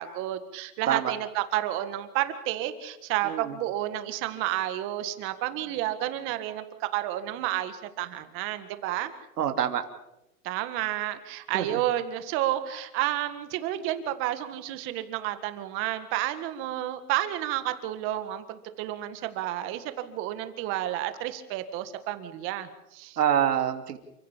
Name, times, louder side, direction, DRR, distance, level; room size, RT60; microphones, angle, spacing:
voice 1, 0.0-9.1 10.4-23.2, right 13 dB, 25° right, 10 dB, 1.8 m, -31 dB
voice 2, 9.4-9.8 11.5-11.6 23.2-24.0, right 10 dB, 85° right, 6 dB, 3.0 m, -25 dB
29.0 x 16.0 x 7.3 m, 0.87 s
supercardioid pair, 165°, 46 cm